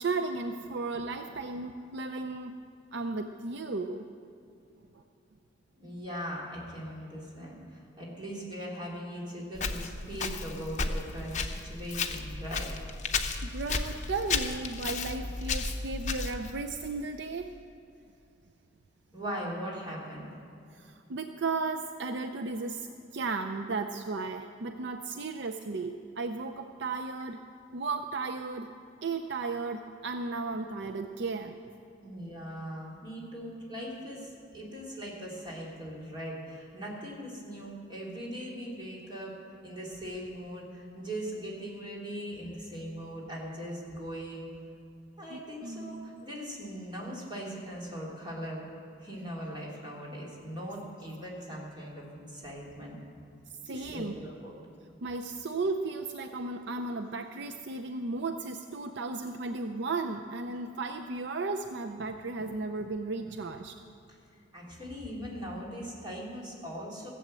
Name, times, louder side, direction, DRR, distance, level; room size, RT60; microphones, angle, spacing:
voice 1, 0.0-2.5 2.9-4.1 13.4-17.6 20.7-27.4 27.7-28.7 29.0-31.6 45.3-46.3 53.6-54.2 55.0-63.7, right 3 dB, 65° right, 7 dB, 0.5 m, -35 dB
voice 2, 5.8-12.7 19.1-20.3 32.0-39.4 39.6-44.5 45.2-48.7 49.0-53.0 53.7-54.5 64.5-67.1, equal, 25° right, -4 dB, 3.1 m, -40 dB
Walk footsteps, 9.5-16.5, left 4 dB, 40° left, 0.8 m, -33 dB
16.5 x 7.8 x 7.6 m, 2.6 s
head